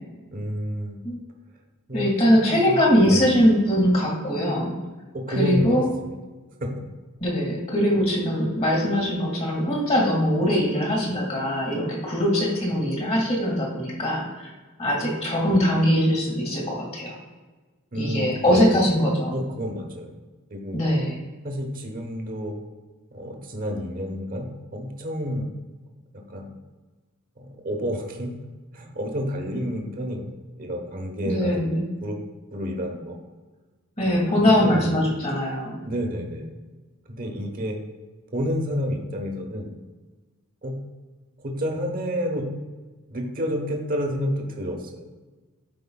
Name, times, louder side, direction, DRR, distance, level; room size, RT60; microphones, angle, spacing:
voice 1, 0.3-1.0 1.9-2.8 3.0-3.4 5.3-6.1 6.6-6.8 17.9-18.8 19.3-20.1 20.5-20.8 21.4-22.6 23.1-25.5 26.1-26.5 27.4-28.4 28.7-30.3 30.6-32.2 32.5-33.2 34.1-35.0 35.8-36.5 37.1-37.8 38.3-39.7 40.6-40.8 41.4-42.4 43.1-45.1, equal, 40° right, 2 dB, 1.1 m, -30 dB
voice 2, 1.9-4.7 5.3-5.9 7.2-14.5 14.8-17.2 17.9-19.4 20.7-21.2 31.3-31.9 34.0-35.8, equal, 30° left, -2 dB, 2.0 m, -22 dB
12.5 x 4.8 x 2.3 m, 1.3 s
head